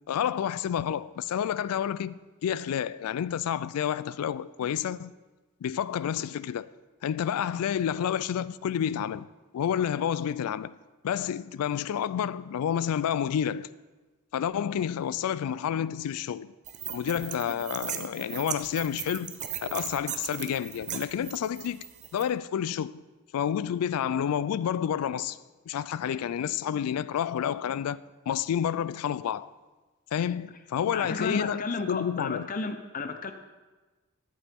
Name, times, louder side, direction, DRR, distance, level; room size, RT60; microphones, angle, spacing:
voice 1, 0.1-5.1 5.6-6.7 7.0-9.3 9.5-10.8 11.0-13.7 14.3-16.5 16.9-19.3 19.6-23.0 23.3-25.4 25.7-29.5 30.1-32.5, left 9 dB, 85° left, 0.3 m, -29 dB
sound 1, 16.7-22.2, right 9 dB, 35° right, 0.5 m, -38 dB
voice 2, 30.9-33.3, left 4 dB, 40° left, 0.6 m, -33 dB
12.5 x 7.5 x 3.5 m
head